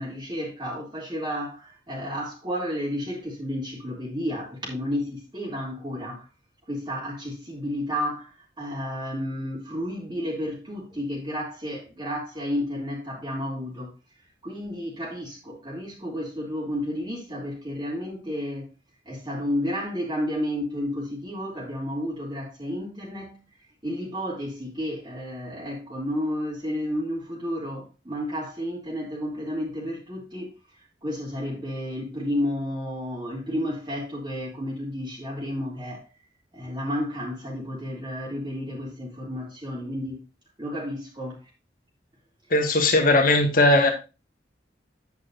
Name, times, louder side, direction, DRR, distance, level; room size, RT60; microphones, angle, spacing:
voice 1, 0.0-6.2 6.7-13.9 14.4-18.7 19.0-23.4 23.8-30.5 31.0-36.1 36.5-40.2 40.6-41.4, equal, 25° right, 3.0 m, -31 dB
voice 2, 42.5-43.9, left 2 dB, 50° left, 1.9 m, -18 dB
9.4 x 9.3 x 2.7 m
head